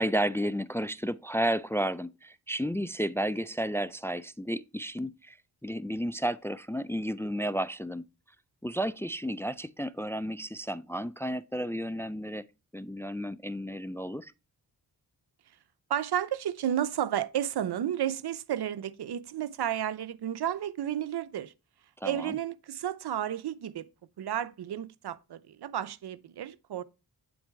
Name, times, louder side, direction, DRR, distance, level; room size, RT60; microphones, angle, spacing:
voice 1, 0.0-5.4 5.6-8.0 8.6-12.5 12.7-14.3 22.0-22.4, equal, 5° left, 0.3 m, -32 dB
voice 2, 15.9-21.5 22.0-23.9 24.2-26.8, right 10 dB, 80° right, 0.7 m, -32 dB
8.6 x 4.0 x 4.5 m
cardioid pair, 75°, 38 cm